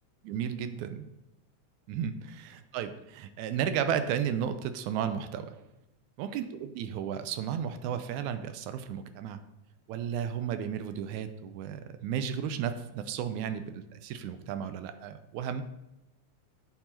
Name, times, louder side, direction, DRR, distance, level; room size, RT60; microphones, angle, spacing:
voice 1, 0.2-1.1 1.9-5.6 6.2-9.4 9.9-15.6, right 8 dB, 85° right, 11 dB, 2.0 m, -33 dB
9.3 x 4.6 x 4.3 m, 0.91 s
omnidirectional pair, 3.3 m